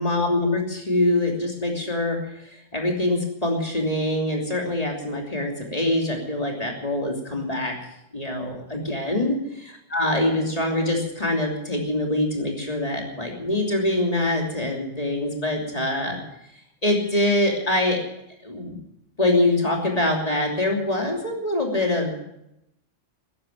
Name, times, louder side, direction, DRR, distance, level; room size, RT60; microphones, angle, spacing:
voice 1, 0.0-2.2 2.4-7.7 8.1-9.4 9.9-16.2 16.8-18.0 18.4-18.8 19.2-22.1, left 1 dB, 30° left, 0 dB, 3.2 m, -24 dB
13.5 x 11.0 x 9.1 m, 0.84 s
omnidirectional pair, 1.3 m